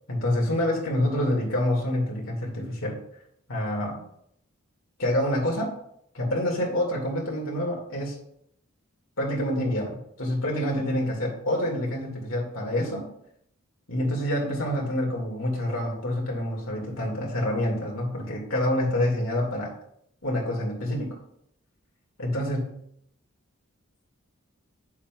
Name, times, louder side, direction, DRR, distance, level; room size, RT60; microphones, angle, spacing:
voice 1, 0.1-3.0 3.5-4.0 5.0-5.7 6.1-8.2 9.2-13.1 13.9-19.7 20.2-21.2 22.2-22.8, left 1 dB, 75° left, -1 dB, 2.2 m, -27 dB
9.0 x 7.1 x 2.4 m, 0.72 s
head